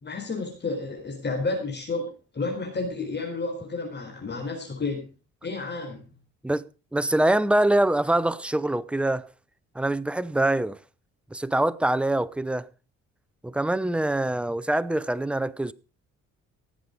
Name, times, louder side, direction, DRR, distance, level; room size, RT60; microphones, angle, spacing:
voice 1, 0.0-5.1 5.4-6.1, left 3 dB, 35° left, 4.2 m, -31 dB
voice 2, 6.4-9.3 9.7-10.8 11.3-12.7 13.4-15.7, right 1 dB, 5° right, 0.7 m, -24 dB
17.5 x 7.8 x 5.2 m
cardioid pair, 90°, 30 cm